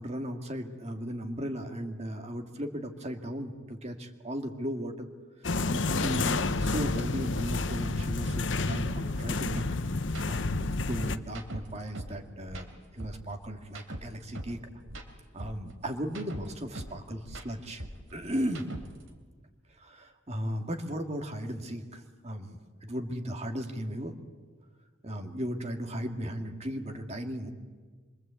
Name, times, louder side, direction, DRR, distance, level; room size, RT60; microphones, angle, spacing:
voice 1, 0.0-5.1 5.6-9.7 10.3-12.7 12.9-14.7 15.3-17.8 18.1-18.7 19.8-24.1 25.0-27.5, equal, 30° right, 4 dB, 2.0 m, -36 dB
sound 1, 5.4-11.2, left 3 dB, 65° left, 0.9 m, -30 dB
sound 2, 9.6-9.7 10.0-10.2 10.6-12.2 12.5-14.6 14.9-17.0 17.2-19.1, right 1 dB, 80° right, 3.1 m, -41 dB
26.5 x 24.0 x 8.3 m, 1.5 s
head